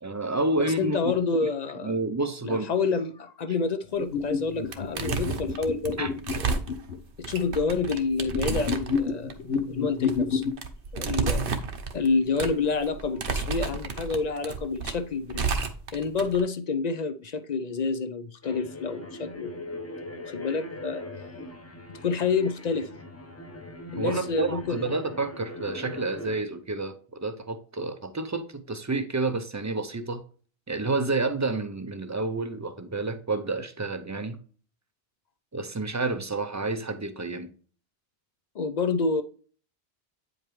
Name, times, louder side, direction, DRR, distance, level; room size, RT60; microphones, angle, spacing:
voice 1, 0.0-1.1 1.8-2.7 6.0-6.1 24.0-30.2 30.7-34.4 35.5-37.5, right 3 dB, 25° right, 0.4 m, -29 dB
voice 2, 0.8-2.0 2.4-6.1 6.4-6.6 7.2-10.4 10.9-11.5 11.9-15.5 15.9-19.6 20.0-21.1 22.0-22.9 23.9-24.8 38.5-39.2, left 4 dB, 50° left, 0.5 m, -28 dB
sound 1, 4.0-7.0 8.2-10.5, left 5 dB, 75° left, 1.0 m, -29 dB
sound 2, 4.1-4.4 4.7-16.4, right 5 dB, 60° right, 0.9 m, -31 dB
sound 3, 18.4-26.4, left 1 dB, 15° left, 0.7 m, -40 dB
8.7 x 5.1 x 3.1 m
omnidirectional pair, 1.1 m